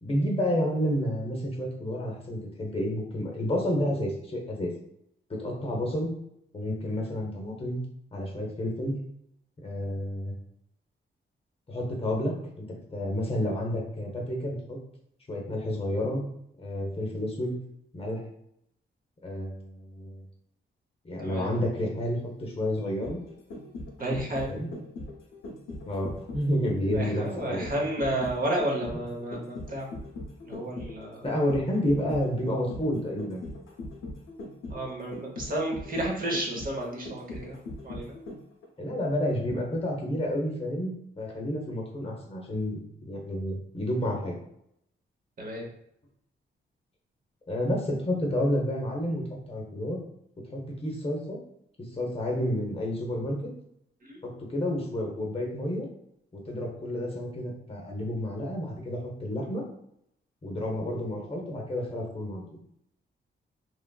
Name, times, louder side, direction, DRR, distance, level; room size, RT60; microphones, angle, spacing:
voice 1, 0.0-4.7 5.3-6.1 6.5-7.8 8.1-8.9 9.6-10.3 11.7-12.7 12.9-14.8 15.3-16.2 16.6-17.6 17.9-18.2 19.2-20.2 21.0-23.2 24.5-24.7 25.9-27.7 31.2-33.4 38.8-44.4 47.5-50.0 50.5-51.4 51.9-53.4 54.2-55.9 56.3-59.6 60.4-62.4, equal, 30° left, 0 dB, 0.7 m, -30 dB
voice 2, 21.2-21.6 24.0-24.6 26.9-29.9 30.4-31.3 34.7-37.6 37.8-38.1 45.4-45.7 54.0-54.2, right 1 dB, 45° right, -1 dB, 0.8 m, -31 dB
sound 1, 22.8-38.7 39.0-39.1, left 2 dB, 85° left, 0.6 m, -40 dB
3.0 x 2.4 x 2.2 m, 0.74 s
cardioid pair, 105°, 20 cm